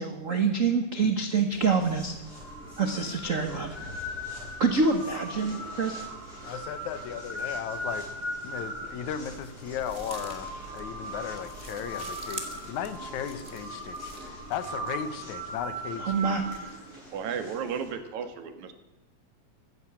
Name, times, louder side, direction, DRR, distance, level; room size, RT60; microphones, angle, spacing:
voice 1, 0.0-2.1 2.8-3.8 4.6-6.0 16.0-16.8, right 4 dB, 60° right, 6 dB, 0.8 m, -26 dB
sound 1, 1.5-17.9, equal, 25° left, 7.4 m, -39 dB
voice 2, 6.4-8.1 8.4-16.3, left 8 dB, 80° left, 12 dB, 2.4 m, -36 dB
sound 2, 9.3-14.3, right 3 dB, 30° right, 1.8 m, -45 dB
voice 3, 17.1-18.7, right 7 dB, 80° right, 8 dB, 2.9 m, -34 dB
14.5 x 11.0 x 8.6 m, 1.1 s
omnidirectional pair, 3.3 m